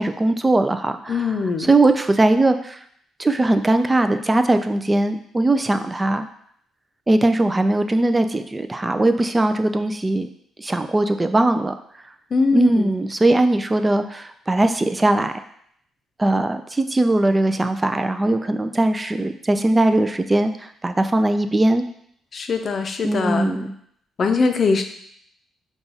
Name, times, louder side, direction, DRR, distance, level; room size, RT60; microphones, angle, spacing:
voice 1, 0.0-1.3 1.6-2.8 3.2-6.3 7.1-10.3 10.6-11.7 12.5-15.3 16.2-21.8 23.0-23.7, right 2 dB, 20° right, 8 dB, 0.3 m, -20 dB
voice 2, 1.1-1.7 12.3-12.9 22.3-23.5 24.2-24.8, left 4 dB, 45° left, 6 dB, 0.5 m, -21 dB
5.4 x 2.4 x 4.0 m, 0.68 s
cardioid pair, 90°, 0 cm